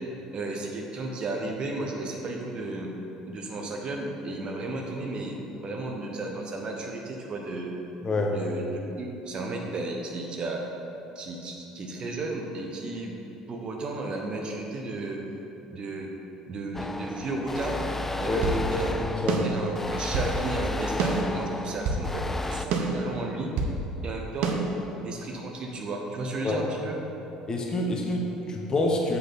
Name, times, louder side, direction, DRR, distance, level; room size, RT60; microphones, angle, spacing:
voice 1, 0.3-2.9 3.3-5.3 5.6-7.7 8.3-10.6 11.1-13.2 13.5-15.2 15.7-16.1 16.5-17.8 18.2-19.0 19.4-23.5 24.0-24.6 25.0-27.0, right 2 dB, 40° right, 1 dB, 1.2 m, -33 dB
voice 2, 8.0-8.3 18.3-19.4 26.4-26.6 27.5-29.2, left 2 dB, 30° left, 0 dB, 1.0 m, -27 dB
sound 1, 16.7-22.7, left 2 dB, 10° left, 0.4 m, -33 dB
sound 2, 17.7-18.6 19.3-20.4 21.0-22.1 22.7-23.8 24.4-24.6, right 4 dB, 55° right, 0.9 m, -28 dB
7.8 x 7.0 x 4.2 m, 2.9 s
figure-of-eight pair, 60°, 2 cm